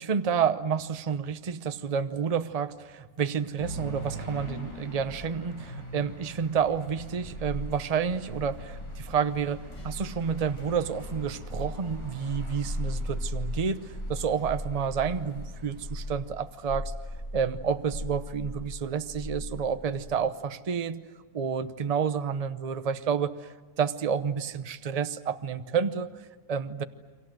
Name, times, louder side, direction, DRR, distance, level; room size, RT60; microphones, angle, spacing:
voice 1, 0.0-16.9 17.3-21.0 21.3-26.8, right 6 dB, 35° right, 11 dB, 0.7 m, -30 dB
sound 1, 3.6-16.1, equal, 75° left, 6.4 m, -44 dB
sound 2, 6.7-20.2, left 1 dB, 20° left, 1.9 m, -38 dB
30.0 x 24.0 x 7.8 m, 1.4 s
omnidirectional pair, 1.7 m